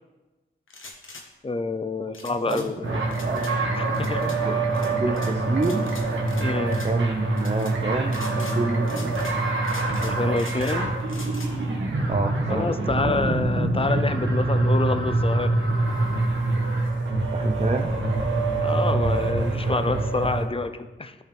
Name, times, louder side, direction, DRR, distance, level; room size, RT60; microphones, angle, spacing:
sound 1, 0.7-1.3 2.1-2.7 3.1-3.5 3.9-4.4 4.7-5.3 5.6-6.4 6.7-6.9 7.4-7.7 8.1-8.6 8.9-9.4 9.6-10.8 11.1-11.5, left 3 dB, 80° left, 1.3 m, -42 dB
voice 1, 1.4-2.8 3.7-4.3 6.4-6.8 10.0-10.9 12.5-15.5 18.6-21.2, left 3 dB, 25° left, 10 dB, 0.6 m, -27 dB
voice 2, 2.5-3.5 4.4-4.6 5.0-5.9 6.8-9.2 12.1-13.1 17.3-17.9, right 3 dB, 35° right, 3 dB, 0.7 m, -28 dB
sound 2, 2.8-20.4, right 2 dB, 70° right, 1.5 m, -25 dB
13.0 x 5.7 x 3.5 m, 1.2 s
cardioid pair, 55°, 20 cm